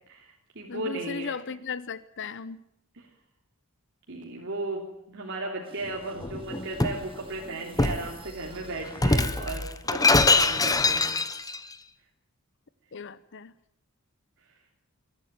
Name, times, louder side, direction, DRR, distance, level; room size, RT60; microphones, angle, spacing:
voice 1, 0.1-1.3 2.9-3.1 4.1-11.1, right 2 dB, 55° right, -2 dB, 3.3 m, -36 dB
voice 2, 0.7-2.6 12.9-13.5, left 5 dB, 55° left, 16 dB, 0.8 m, -36 dB
sound 1, 5.6-10.0, equal, 25° right, 2.5 m, -45 dB
Shatter, 6.2-7.0 7.8-8.1 9.0-11.6, left 3 dB, 15° left, 1.1 m, -23 dB
22.5 x 13.0 x 9.4 m, 0.75 s
head